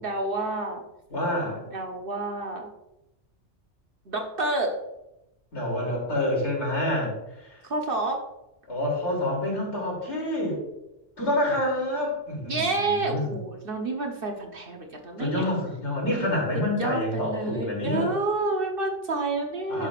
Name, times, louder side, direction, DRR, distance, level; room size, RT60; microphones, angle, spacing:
voice 1, 0.0-0.8 1.7-2.7 4.1-4.7 7.7-8.2 12.4-15.5 16.8-19.9, right 2 dB, 50° right, 2 dB, 1.2 m, -29 dB
voice 2, 1.1-1.6 5.5-7.6 8.7-10.6 11.2-13.3 15.2-18.1 19.7-19.9, left 1 dB, 70° left, -3 dB, 3.3 m, -27 dB
11.0 x 6.3 x 2.5 m, 0.90 s
omnidirectional pair, 1.2 m